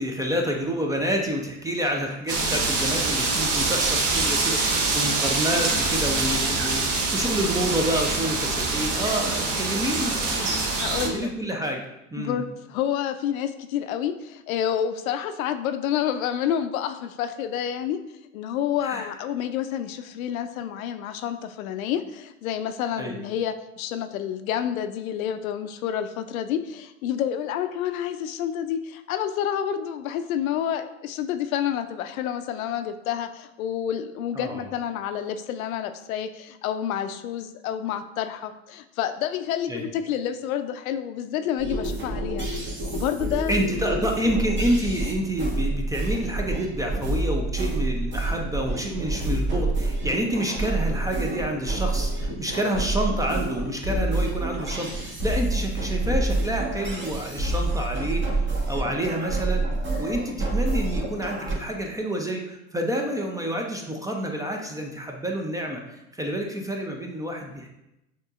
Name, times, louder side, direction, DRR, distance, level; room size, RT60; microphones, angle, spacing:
voice 1, 0.0-10.6 11.0-11.8 12.1-12.4 18.8-19.1 23.0-23.2 34.4-34.7 39.7-39.8 43.5-59.6 60.0-67.7, equal, 10° right, 1 dB, 0.4 m, -28 dB
sound 1, 2.3-11.1, right 3 dB, 50° right, 1.0 m, -25 dB
voice 2, 10.8-11.3 12.2-18.0 18.3-42.5 42.9-43.8, left 9 dB, 75° left, 9 dB, 0.5 m, -29 dB
sound 2, 41.6-61.5, right 2 dB, 25° right, 1.2 m, -28 dB
6.3 x 3.0 x 2.4 m, 0.90 s
hypercardioid pair, 85°, 42 cm